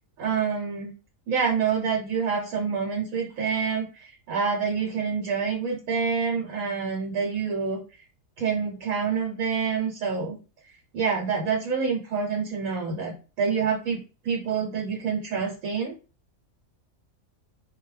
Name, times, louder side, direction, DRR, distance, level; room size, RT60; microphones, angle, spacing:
voice 1, 0.2-0.9 1.3-3.9 4.3-7.8 8.4-10.4 10.9-15.9, right 6 dB, 90° right, -1 dB, 1.2 m, -27 dB
2.2 x 2.2 x 3.1 m, 0.32 s
omnidirectional pair, 1.4 m